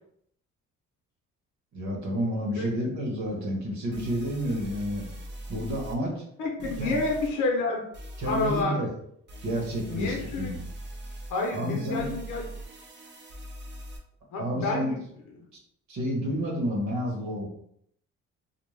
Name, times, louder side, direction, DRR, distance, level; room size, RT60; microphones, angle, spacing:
voice 1, 1.7-5.0 5.5-6.2 6.8-7.0 8.2-8.9 9.4-10.6 11.5-12.1 14.4-14.9 15.9-17.5, equal, 65° right, -1 dB, 1.1 m, -30 dB
voice 2, 2.6-2.9 6.4-7.8 8.2-8.8 9.9-10.6 11.3-12.5 14.3-15.0, left 3 dB, 80° left, 1 dB, 0.7 m, -29 dB
sound 1, 3.2-3.3 3.9-6.0 6.6-7.3 7.9-8.6 9.3-14.0, right 1 dB, 35° right, 0.6 m, -42 dB
2.5 x 2.1 x 3.1 m, 0.69 s
cardioid pair, 90°, 30 cm